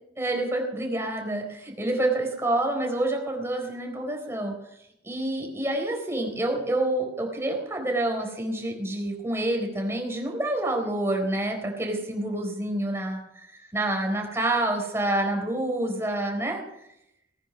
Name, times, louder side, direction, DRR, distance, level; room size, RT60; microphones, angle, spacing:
voice 1, 0.2-4.5 5.0-16.6, right 1 dB, 15° right, 1 dB, 4.0 m, -28 dB
18.5 x 10.0 x 6.4 m, 0.80 s
head